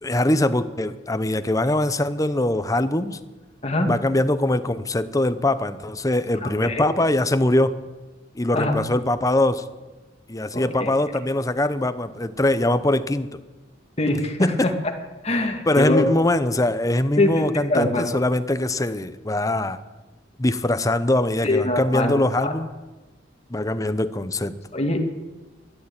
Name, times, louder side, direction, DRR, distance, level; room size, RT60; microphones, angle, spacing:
voice 1, 0.0-3.2 3.8-7.8 8.3-9.6 10.3-13.4 14.4-14.7 15.7-19.8 20.4-22.7 23.5-24.5, left 1 dB, 20° left, 12 dB, 0.7 m, -22 dB
voice 2, 6.4-6.8 8.5-8.7 10.5-10.9 14.0-14.7 15.2-16.1 17.2-17.4 17.7-18.0 21.4-22.1 22.4-22.5 24.7-25.0, left 2 dB, 35° left, 3 dB, 2.1 m, -23 dB
13.0 x 12.0 x 8.8 m, 1.2 s
head